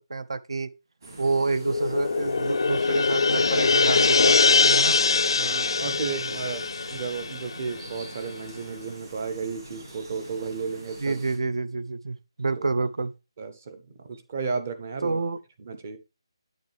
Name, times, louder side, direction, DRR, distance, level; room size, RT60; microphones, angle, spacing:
voice 1, 0.1-0.7 1.2-5.0 11.0-13.1 15.0-15.4, right 3 dB, 75° right, 0.7 m, -28 dB
sound 1, 1.0-11.4, right 1 dB, 50° right, 3.3 m, -45 dB
sound 2, 1.5-8.1, left 4 dB, 60° left, 0.3 m, -23 dB
voice 2, 5.4-11.2 12.6-12.7 13.4-15.2 15.6-16.0, right 5 dB, 25° right, 0.7 m, -33 dB
8.7 x 6.5 x 3.3 m
hypercardioid pair, 180°, 3 cm